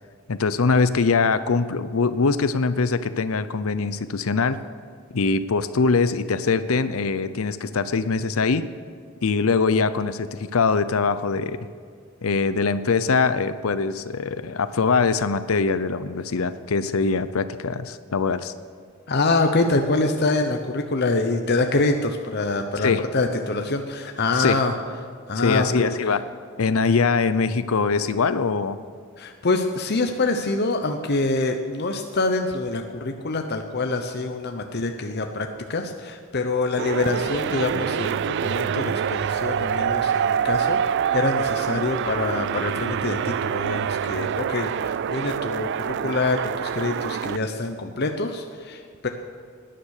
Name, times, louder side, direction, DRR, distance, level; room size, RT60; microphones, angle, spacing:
voice 1, 0.3-4.6 5.1-8.6 9.2-11.6 12.2-18.5 22.8-23.0 24.3-24.6 25.4-26.2 26.6-28.8, left 4 dB, 85° left, 13 dB, 0.6 m, -22 dB
voice 2, 19.1-24.7 25.3-25.9 29.2-40.8 41.1-49.1, left 3 dB, 50° left, 5 dB, 0.9 m, -25 dB
sound 1, 36.8-47.4, right 8 dB, 55° right, 0.3 m, -26 dB
18.0 x 10.0 x 6.5 m, 2.1 s
head